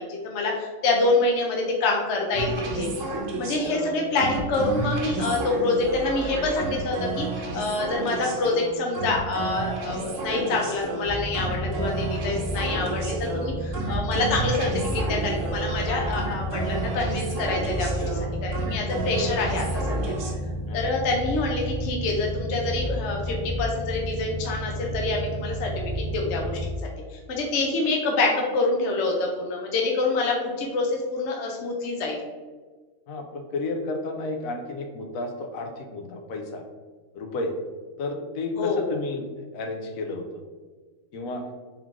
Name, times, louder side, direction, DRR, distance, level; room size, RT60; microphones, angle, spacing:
voice 1, 0.0-2.9 3.4-20.0 20.7-26.8 27.1-32.2 38.6-38.9, left 3 dB, 65° left, 0 dB, 0.9 m, -26 dB
sound 1, 2.3-20.3, right 3 dB, 75° right, 1.0 m, -31 dB
sound 2, 11.0-26.6, equal, 35° right, 0.5 m, -31 dB
voice 2, 33.1-36.6 37.1-37.5 38.0-40.4 41.1-41.5, left 2 dB, 90° left, 4 dB, 1.0 m, -32 dB
3.6 x 3.6 x 3.0 m, 1.4 s
omnidirectional pair, 1.4 m